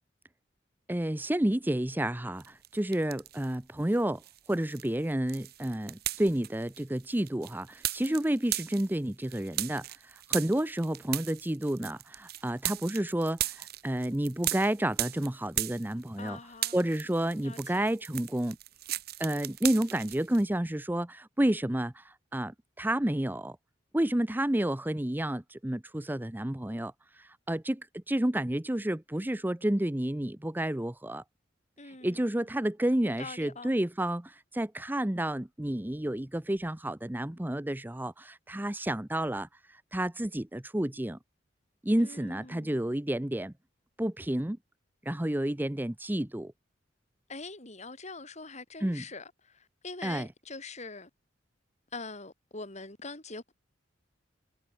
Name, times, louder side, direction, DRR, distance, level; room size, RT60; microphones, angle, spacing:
voice 1, 0.9-4.2 4.5-16.4 16.7-18.6 18.9-23.6 23.9-31.2 31.8-41.2 41.8-43.5 44.0-44.6 45.0-46.5 48.8-49.0 50.0-50.3, right 1 dB, 10° right, 0.7 m, -30 dB
sound 1, 2.4-3.6 3.9-16.3 16.5-20.4, right 14 dB, 60° right, 1.2 m, -37 dB
voice 2, 16.2-16.8 17.4-17.9 31.8-32.3 33.0-33.7 42.0-42.9 47.3-51.1 51.9-53.5, left 3 dB, 40° left, 7.4 m, -44 dB
head